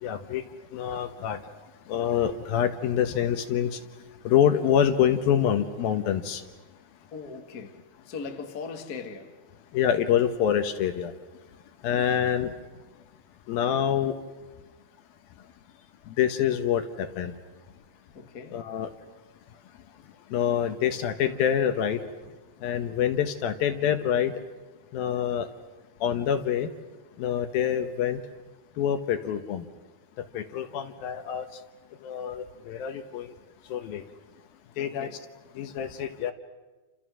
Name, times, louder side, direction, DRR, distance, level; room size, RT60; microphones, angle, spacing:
voice 1, 0.0-0.4 0.7-1.4 1.9-3.7 4.3-6.4 9.7-11.1 11.8-12.5 13.5-14.2 16.2-17.3 18.5-18.9 20.3-22.0 22.6-24.3 24.9-25.5 26.0-26.7 27.2-28.2 28.8-29.6 30.3-31.5 32.0-33.3 33.7-34.0 34.8-35.1 35.6-36.3, left 9 dB, 70° left, 2.7 m, -26 dB
voice 2, 7.1-9.4 18.1-18.6 34.8-35.2, left 5 dB, 45° left, 1.2 m, -40 dB
29.5 x 28.0 x 6.3 m
omnidirectional pair, 4.8 m